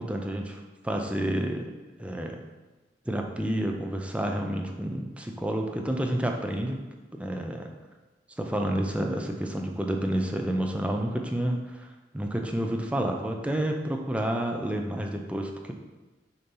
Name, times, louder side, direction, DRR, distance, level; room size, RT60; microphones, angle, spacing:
voice 1, 0.0-1.7 2.0-2.4 3.1-6.8 7.1-7.7 8.4-11.9 12.1-15.7, right 1 dB, 5° right, 2 dB, 0.5 m, -29 dB
6.6 x 2.8 x 5.4 m, 1.2 s
head